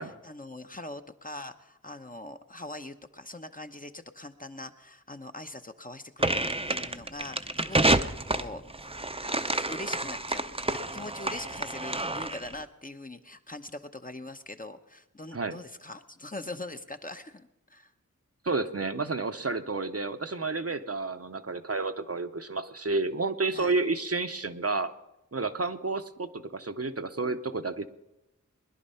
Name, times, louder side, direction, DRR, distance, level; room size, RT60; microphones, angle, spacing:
voice 1, 0.0-8.6 9.3-17.9 23.5-23.8, left 2 dB, 25° left, 7 dB, 0.9 m, -42 dB
sound 1, 6.2-12.5, right 2 dB, 15° right, 0.7 m, -29 dB
voice 2, 18.4-24.9 25.3-27.9, right 3 dB, 50° right, 8 dB, 0.8 m, -30 dB
20.5 x 11.0 x 5.6 m, 0.93 s
wide cardioid pair, 40°, 32 cm